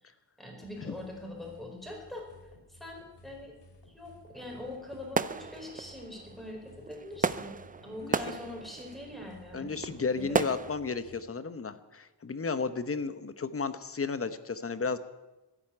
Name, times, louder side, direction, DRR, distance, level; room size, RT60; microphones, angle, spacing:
voice 1, 0.0-2.3 2.7-3.5 3.9-7.5 7.8-10.4, left 1 dB, ahead, 1 dB, 4.4 m, -43 dB
sound 1, 0.6-11.2, left 1 dB, 75° left, 3.7 m, -57 dB
sound 2, 4.3-10.8, right 5 dB, 20° right, 0.4 m, -35 dB
voice 2, 9.5-15.0, left 4 dB, 35° left, 12 dB, 0.9 m, -33 dB
14.0 x 10.5 x 9.7 m, 1.1 s
wide cardioid pair, 130°, 42 cm